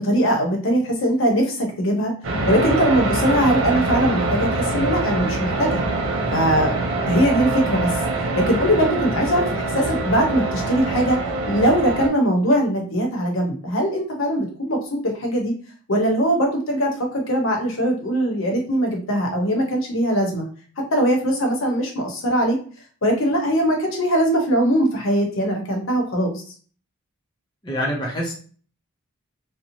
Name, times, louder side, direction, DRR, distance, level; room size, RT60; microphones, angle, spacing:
voice 1, 0.0-2.1 2.5-5.8 6.3-6.7 7.1-7.9 8.3-11.2 11.5-15.5 15.9-20.5 20.9-22.6 23.0-26.3, equal, 65° left, 1 dB, 0.7 m, -21 dB
sound 1, 2.2-12.1, right 2 dB, 65° right, 0.5 m, -24 dB
voice 2, 27.6-28.3, equal, 20° left, -3 dB, 0.5 m, -25 dB
2.9 x 2.0 x 2.6 m, 0.42 s
head